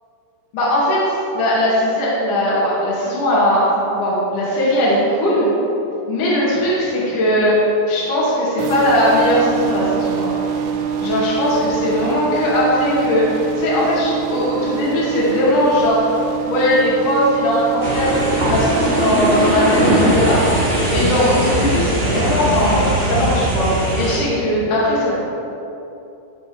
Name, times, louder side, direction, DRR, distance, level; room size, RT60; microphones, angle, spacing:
voice 1, 0.5-5.5 6.1-7.6 7.9-10.3 11.0-16.0 16.4-20.5 20.9-25.2, left 1 dB, 50° left, -8 dB, 3.1 m, -19 dB
sound 1, 8.6-20.4, right 7 dB, 85° right, 2.2 m, -25 dB
sound 2, 17.8-24.2, right 1 dB, 40° right, 0.8 m, -19 dB
13.0 x 7.2 x 5.0 m, 2.8 s
omnidirectional pair, 5.8 m